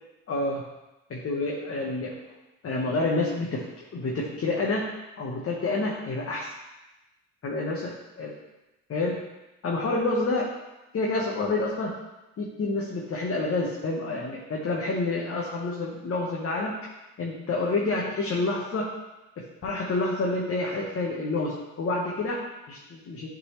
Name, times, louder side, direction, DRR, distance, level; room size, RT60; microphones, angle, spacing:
voice 1, 0.3-0.6 1.1-2.2 2.6-4.9 5.2-6.5 7.4-8.3 8.9-9.2 9.6-10.5 10.9-12.0 12.4-16.7 17.2-18.9 19.4-23.3, left 2 dB, 50° left, -3 dB, 1.2 m, -28 dB
9.7 x 3.9 x 3.2 m, 1.0 s
cardioid pair, 90°, 30 cm